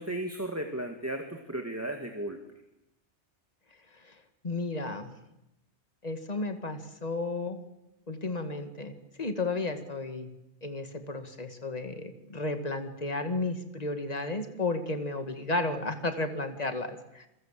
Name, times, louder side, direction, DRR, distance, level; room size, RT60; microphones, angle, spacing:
voice 1, 0.0-2.4, right 1 dB, 15° right, 4 dB, 2.0 m, -35 dB
voice 2, 4.4-5.1 6.0-7.6 8.1-10.3 10.6-17.3, left 2 dB, 35° left, 7 dB, 2.2 m, -33 dB
28.0 x 23.5 x 7.5 m, 0.89 s
omnidirectional pair, 1.2 m